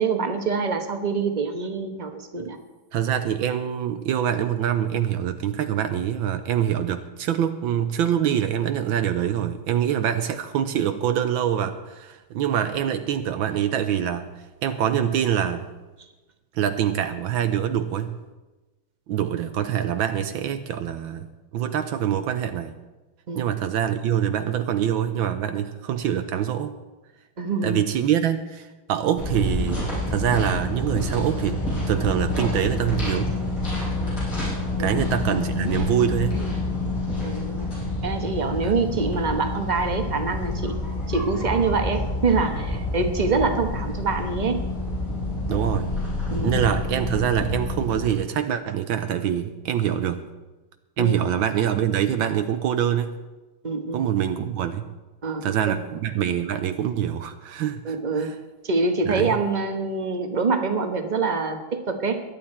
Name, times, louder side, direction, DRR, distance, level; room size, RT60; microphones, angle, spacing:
voice 1, 0.0-2.6 23.3-23.5 27.4-27.8 34.8-35.0 37.2-37.7 38.0-40.8 41.1-44.6 46.3-46.5 51.0-51.1 53.6-54.0 55.2-55.8 57.8-58.3 58.6-62.2, right 4 dB, 30° right, 6 dB, 0.9 m, -25 dB
voice 2, 2.9-14.3 14.6-15.7 16.5-18.2 19.1-22.8 23.3-26.8 27.6-31.6 31.9-33.3 34.8-36.4 38.6-38.7 45.5-45.9 46.4-50.2 51.0-53.2 53.9-54.9 55.4-58.3 59.1-59.4, right 9 dB, 75° right, 9 dB, 1.4 m, -25 dB
sound 1, 29.2-48.1, left 2 dB, 85° left, 6.6 m, -28 dB
22.5 x 9.4 x 4.4 m, 1.1 s
omnidirectional pair, 2.2 m